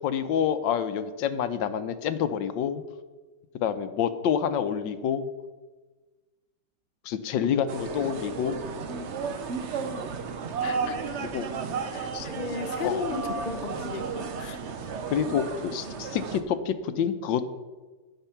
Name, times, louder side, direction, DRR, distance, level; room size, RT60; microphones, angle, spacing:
voice 1, 0.0-2.8 3.6-5.3 7.0-8.6 11.1-11.5 12.1-12.3 12.8-13.0 15.1-17.4, left 8 dB, 75° left, 11 dB, 1.3 m, -28 dB
sound 1, 7.7-16.4, right 5 dB, 60° right, 0.7 m, -33 dB
voice 2, 10.6-11.2 11.9-14.6, left 5 dB, 55° left, 7 dB, 0.5 m, -35 dB
10.5 x 8.1 x 5.7 m, 1.3 s
omnidirectional pair, 2.1 m